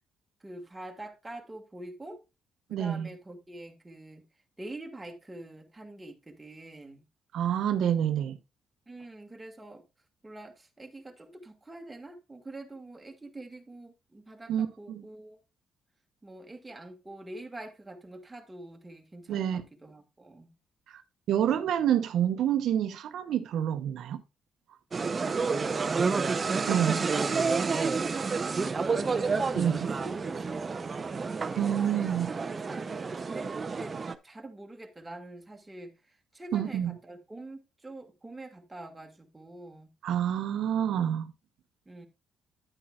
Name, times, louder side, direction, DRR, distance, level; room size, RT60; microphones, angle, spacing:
voice 1, 0.4-2.2 2.7-4.2 4.6-7.1 8.9-9.8 10.2-15.4 16.2-20.6 25.5-29.3 29.7-34.0 34.2-39.9 41.9-42.1, right 2 dB, 15° right, 2.0 m, -45 dB
voice 2, 2.7-3.1 7.3-8.4 14.5-15.0 19.3-19.6 20.9-21.0 21.3-24.2 26.7-27.0 29.5-29.9 31.6-32.3 36.5-36.9 40.0-41.3, right 9 dB, 75° right, 0.9 m, -28 dB
sound 1, 24.9-34.1, right 4 dB, 35° right, 0.7 m, -30 dB
10.0 x 8.8 x 2.4 m
cardioid pair, 90°, 0 cm